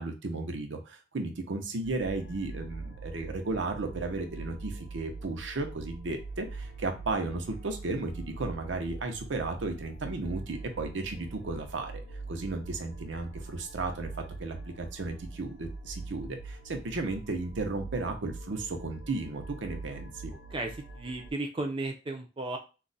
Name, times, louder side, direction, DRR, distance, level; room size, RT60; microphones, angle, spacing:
voice 1, 0.0-12.0 12.3-14.1 14.4-20.3, right 3 dB, 85° right, 5 dB, 0.6 m, -34 dB
sound 1, 1.8-21.3, right 3 dB, 65° left, 0.6 m, -43 dB
voice 2, 20.5-22.6, right 2 dB, 30° right, 3 dB, 0.4 m, -34 dB
2.4 x 2.1 x 3.9 m, 0.32 s
head